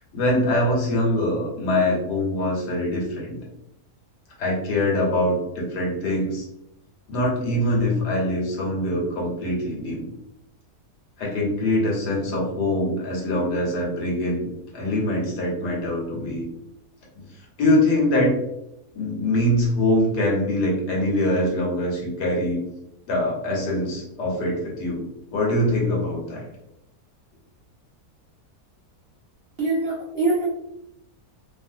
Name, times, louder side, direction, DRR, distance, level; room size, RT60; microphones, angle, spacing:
voice 1, 0.1-3.4 4.4-6.5 7.1-10.1 11.2-14.5 14.7-16.5 17.6-18.3 18.9-22.6 23.1-25.1 25.3-26.4, left 1 dB, 85° left, -2 dB, 1.6 m, -23 dB
voice 2, 29.6-30.5, right 2 dB, 55° right, -6 dB, 0.7 m, -23 dB
3.2 x 2.5 x 2.6 m, 0.80 s
omnidirectional pair, 1.7 m